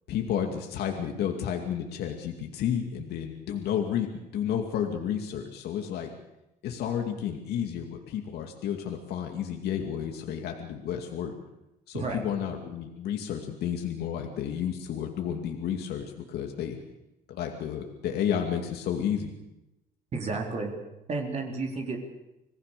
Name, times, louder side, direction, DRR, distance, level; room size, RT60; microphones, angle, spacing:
voice 1, 0.1-6.1 6.6-11.3 11.9-16.8 17.3-19.3, left 9 dB, 75° left, 3 dB, 2.4 m, -31 dB
voice 2, 20.1-20.7 21.1-22.1, right 3 dB, 40° right, 1 dB, 4.2 m, -32 dB
26.5 x 19.0 x 6.9 m, 0.91 s
cardioid pair, 110°, 17 cm